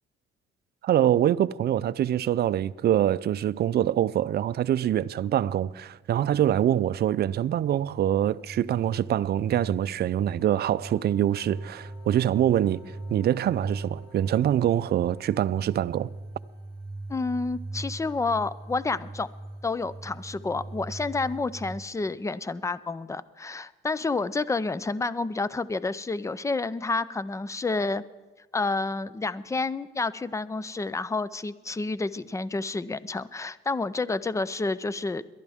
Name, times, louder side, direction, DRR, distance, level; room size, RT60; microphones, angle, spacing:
voice 1, 0.8-16.1, right 11 dB, 55° right, 0.4 m, -24 dB
sound 1, 5.6-21.8, right 2 dB, 25° right, 3.6 m, -41 dB
Wind instrument woodwind instrument, 10.4-16.1, equal, 5° right, 3.0 m, -52 dB
voice 2, 17.1-19.3 19.6-28.0 28.5-35.2, left 3 dB, 15° left, 0.5 m, -29 dB
22.0 x 11.5 x 3.6 m
cardioid pair, 90°, 20 cm